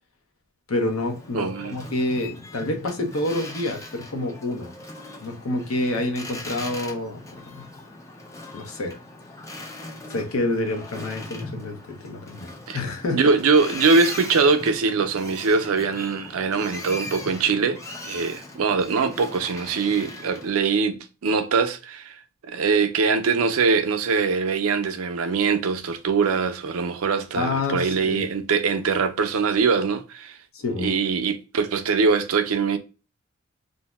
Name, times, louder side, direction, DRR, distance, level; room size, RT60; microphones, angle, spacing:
voice 1, 0.7-4.7 5.2-7.7 8.5-9.0 10.1-13.3 27.3-28.3 30.5-31.0, left 2 dB, 85° left, 0.7 m, -28 dB
Boat Water vehicle, 0.8-20.6, left 2 dB, 15° left, 0.4 m, -39 dB
voice 2, 1.3-1.8 12.7-12.8 13.1-22.2 22.4-30.3 30.8-32.8, right 4 dB, 90° right, 0.4 m, -22 dB
2.6 x 2.0 x 3.2 m
head